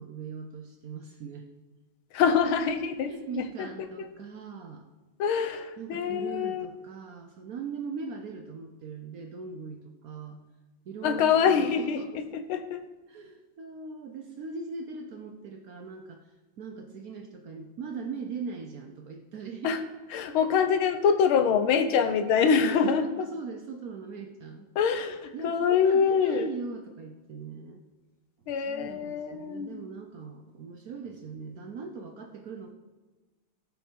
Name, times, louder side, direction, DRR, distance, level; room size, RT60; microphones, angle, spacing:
voice 1, 0.0-1.5 3.1-4.9 5.8-10.4 10.9-12.1 13.1-16.2 16.6-19.8 20.6-20.7 22.0-24.7 25.3-27.8 28.7-32.7, right 4 dB, 60° right, 4 dB, 1.0 m, -40 dB
voice 2, 2.1-3.7 4.0-4.1 5.2-6.7 11.0-12.8 19.6-19.8 20.1-23.1 24.7-26.5 28.5-29.8, left 6 dB, 85° left, 9 dB, 1.7 m, -25 dB
17.0 x 5.8 x 4.6 m, 1.2 s
omnidirectional pair, 2.3 m